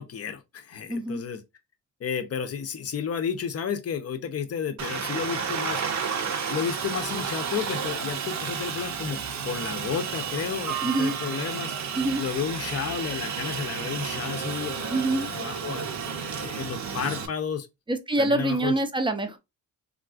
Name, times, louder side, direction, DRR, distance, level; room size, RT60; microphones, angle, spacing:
voice 1, 0.0-1.4 2.0-6.2 6.5-11.7 12.2-17.7 18.2-18.7, left 7 dB, 45° left, 0.6 m, -32 dB
voice 2, 0.9-1.2 10.8-11.2 12.0-12.2 14.9-15.3 17.9-19.4, right 2 dB, 15° right, 0.5 m, -25 dB
Aircraft, 4.8-17.3, right 7 dB, 55° right, 0.7 m, -32 dB
3.7 x 2.4 x 2.4 m
cardioid pair, 115°, 34 cm